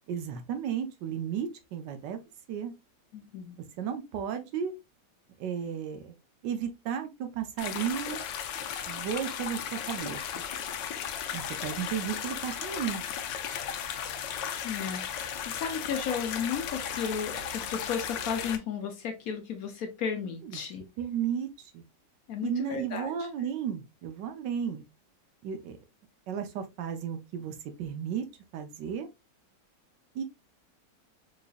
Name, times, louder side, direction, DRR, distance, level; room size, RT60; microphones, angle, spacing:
voice 1, 0.1-2.2 2.5-2.7 3.8-4.7 5.4-6.1 6.4-8.2 8.9-10.4 11.3-13.0 20.4-20.6 21.0-21.8 22.4-24.8 25.4-25.8 26.3-28.2 28.5-29.1 30.1-30.2, right 8 dB, 80° right, 1.3 m, -34 dB
voice 2, 3.1-3.6 14.6-20.8 22.3-23.3, left 7 dB, 65° left, 1.0 m, -34 dB
sound 1, 7.6-18.6, left 8 dB, 85° left, 1.3 m, -35 dB
4.8 x 2.6 x 2.4 m
omnidirectional pair, 1.9 m